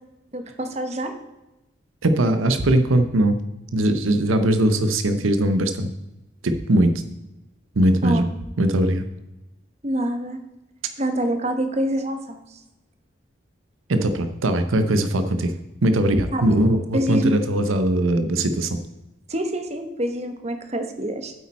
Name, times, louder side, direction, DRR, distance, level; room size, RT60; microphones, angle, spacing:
voice 1, 0.3-1.1 8.0-8.2 9.8-10.4 11.0-12.6 16.3-16.4 16.9-17.4 19.3-21.3, equal, 35° right, 7 dB, 1.0 m, -26 dB
voice 2, 2.0-3.4 3.7-5.9 6.4-6.9 7.8-8.3 8.6-9.0 13.9-15.5 15.8-18.8, right 1 dB, 90° right, 9 dB, 0.7 m, -20 dB
8.5 x 8.5 x 4.2 m, 0.97 s
head